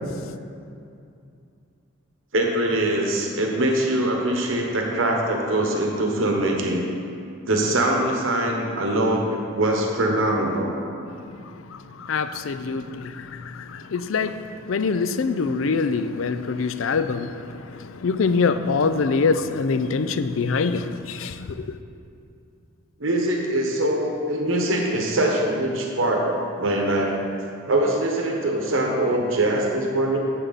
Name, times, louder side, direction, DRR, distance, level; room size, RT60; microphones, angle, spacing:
voice 1, 2.3-6.9 7.5-10.8 23.0-27.2 27.7-30.2, right 1 dB, 75° right, 1 dB, 1.1 m, -23 dB
voice 2, 12.1-13.1 13.7-14.4 14.7-17.3 18.0-21.7, left 4 dB, 80° left, 11 dB, 0.4 m, -24 dB
9.9 x 7.5 x 4.1 m, 2.5 s
head